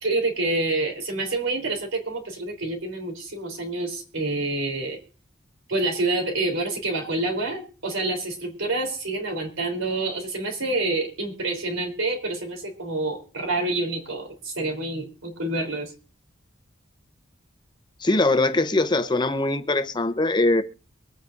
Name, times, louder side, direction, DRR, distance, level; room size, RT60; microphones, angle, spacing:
voice 1, 0.0-5.0 5.7-15.9, right 2 dB, 85° right, 3.4 m, -27 dB
voice 2, 18.0-20.6, left 2 dB, 20° left, 0.7 m, -22 dB
23.5 x 9.2 x 2.5 m
head